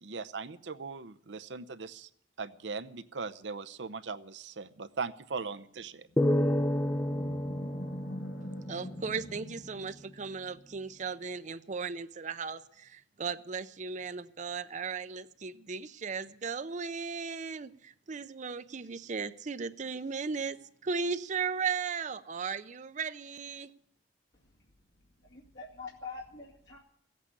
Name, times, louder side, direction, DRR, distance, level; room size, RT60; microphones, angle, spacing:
voice 1, 0.0-2.1 2.4-6.1, right 4 dB, 85° right, 14 dB, 0.8 m, -39 dB
Animal, 6.0-10.5, left 1 dB, 80° left, 1.6 m, -45 dB
sound 1, 6.2-9.6, left 1 dB, 15° left, 0.5 m, -30 dB
voice 2, 8.7-20.6 20.8-23.7, right 5 dB, 45° right, 12 dB, 0.6 m, -36 dB
voice 3, 24.3-24.7 25.2-26.8, left 4 dB, 65° left, -4 dB, 2.1 m, -45 dB
15.5 x 8.4 x 9.7 m, 0.70 s
head